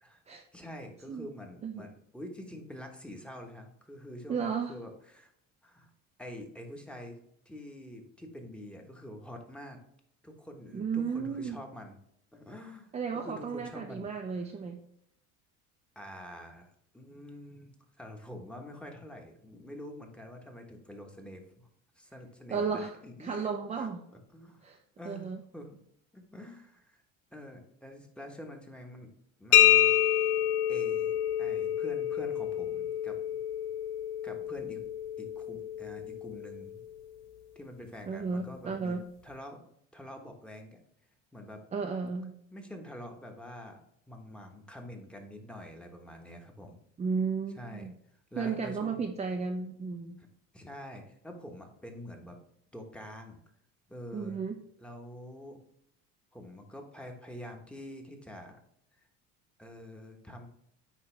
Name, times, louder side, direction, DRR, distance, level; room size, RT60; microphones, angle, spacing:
voice 1, 0.5-5.3 5.6-5.9 6.2-7.2 7.4-9.8 10.2-12.0 12.3-14.4 15.9-16.7 16.9-21.7 22.0-24.6 25.0-25.8 26.1-27.0 27.3-29.1 29.4-30.0 30.7-31.1 31.4-33.2 34.2-34.8 35.2-36.8 37.5-39.0 39.2-39.6 39.9-40.8 41.3-41.6 42.5-43.8 44.1-46.8 47.6-47.9 48.3-49.0 50.2-50.3 50.5-52.4 52.7-53.4 53.9-54.4 54.8-55.6 56.3-58.5 59.6-60.5, left 1 dB, 5° left, 3 dB, 1.2 m, -46 dB
voice 2, 4.3-4.7 10.7-11.6 12.9-14.8 22.5-24.0 24.6-24.8 25.1-25.4 38.1-39.1 41.7-42.4 47.0-48.0 48.3-50.2 54.1-54.6, right 5 dB, 20° right, 2 dB, 0.6 m, -34 dB
sound 1, 29.5-37.1, left 11 dB, 85° left, 0.7 m, -28 dB
9.5 x 3.3 x 3.3 m, 0.73 s
supercardioid pair, 115°, 31 cm